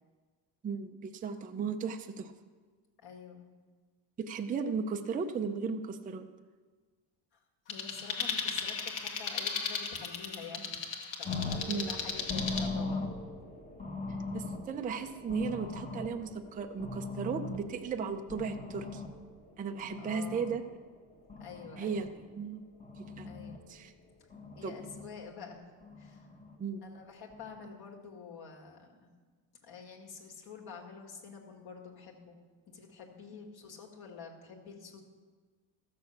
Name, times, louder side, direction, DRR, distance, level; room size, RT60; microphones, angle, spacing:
voice 1, 0.6-2.3 4.2-6.3 11.7-11.9 14.3-19.0 19.6-20.6 21.8-22.6 23.0-23.3 23.7-23.9 24.6-24.8 26.6-26.8, right 5 dB, 20° right, 6 dB, 0.4 m, -36 dB
voice 2, 3.0-3.5 7.7-10.9 11.2-13.1 20.0-20.5 21.4-22.1 23.2-23.8 24.5-25.7 26.0-26.3 26.8-29.1 29.6-32.4 32.7-35.0, left 5 dB, 50° left, 0 dB, 1.9 m, -48 dB
sound 1, 7.7-12.7, left 6 dB, 65° left, 1.4 m, -36 dB
sound 2, 11.3-20.6 21.0-22.1 22.6-23.6 24.3-25.1 25.8-26.6 27.3-27.6, left 3 dB, 15° left, 1.0 m, -40 dB
14.0 x 6.6 x 7.0 m, 1.4 s
cardioid pair, 165°, 47 cm